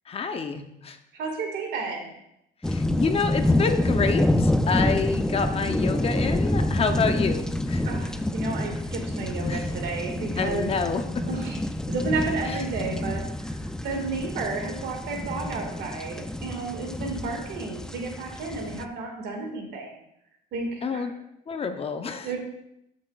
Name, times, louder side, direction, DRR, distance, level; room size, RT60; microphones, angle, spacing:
voice 1, 0.1-1.0 2.6-7.8 9.5-9.7 10.4-11.2 12.4-12.6 20.8-21.1 21.5-22.3, left 5 dB, 35° left, 7 dB, 0.7 m, -28 dB
voice 2, 1.1-2.1 7.8-10.7 11.3-11.6 11.9-19.9 20.5-21.1 22.2-22.4, right 3 dB, 75° right, 2 dB, 2.0 m, -32 dB
sound 1, 2.6-18.8, left 1 dB, 5° left, 0.4 m, -27 dB
13.5 x 6.2 x 2.4 m, 0.79 s
cardioid pair, 110°, 17 cm